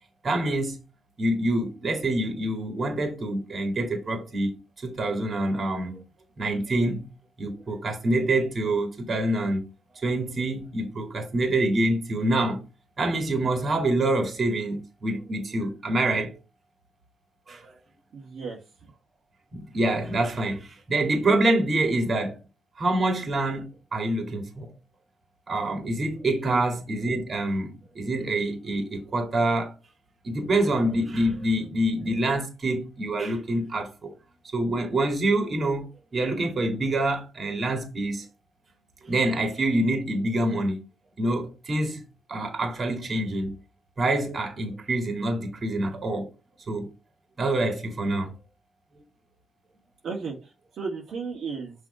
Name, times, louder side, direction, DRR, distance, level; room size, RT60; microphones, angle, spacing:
voice 1, 0.2-0.8 1.2-4.5 4.8-6.0 6.4-7.1 7.4-9.6 10.0-12.6 13.0-16.4 17.5-17.7 19.5-22.4 22.8-24.8 25.5-29.7 30.2-34.1 34.5-38.3 39.0-40.8 41.2-42.0 42.3-43.5 44.0-46.3 46.6-46.9 47.4-48.4, right 1 dB, 40° right, 2.1 m, -26 dB
voice 2, 18.1-18.6 26.4-26.6 30.3-30.4 50.0-51.7, right 5 dB, 60° right, 1.6 m, -34 dB
6.3 x 3.4 x 5.0 m
cardioid pair, 90°, 0 cm